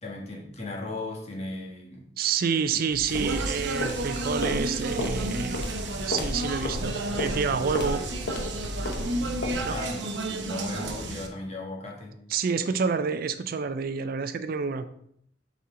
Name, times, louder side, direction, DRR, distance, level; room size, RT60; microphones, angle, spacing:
voice 1, 0.0-2.1 3.2-3.3 9.7-12.2, left 2 dB, 40° left, -1 dB, 1.4 m, -36 dB
voice 2, 2.2-5.7 6.1-8.0 9.6-9.8 12.3-14.9, right 5 dB, 55° right, 11 dB, 0.4 m, -28 dB
sound 1, 2.9-8.2, equal, 10° right, 0.7 m, -45 dB
sound 2, 3.1-9.9, left 1 dB, 70° left, 0.9 m, -33 dB
Speech, 3.1-11.3, right 2 dB, 85° right, 0.8 m, -32 dB
7.2 x 4.3 x 3.7 m, 0.69 s
head